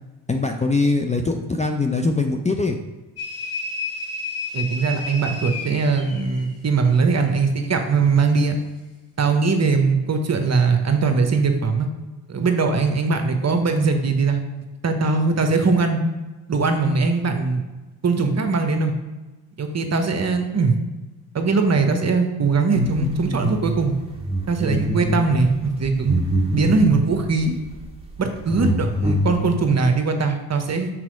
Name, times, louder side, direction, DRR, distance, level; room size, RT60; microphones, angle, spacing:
voice 1, 0.3-2.8, left 3 dB, 15° left, 3 dB, 0.6 m, -22 dB
sound 1, 3.2-6.5, left 3 dB, 30° left, 1.7 m, -31 dB
voice 2, 4.5-8.5 9.2-11.9 12.3-14.4 14.8-16.0 16.5-17.6 18.0-18.9 19.6-20.7 21.3-24.0 24.5-26.2 26.5-27.6 28.2-30.9, right 4 dB, 35° right, 6 dB, 1.1 m, -20 dB
sound 2, 22.7-23.6 24.0-27.0 27.7-27.8 28.2-29.4, equal, 10° right, 1.8 m, -24 dB
6.0 x 4.3 x 5.2 m, 1.2 s
hypercardioid pair, 45°, 48 cm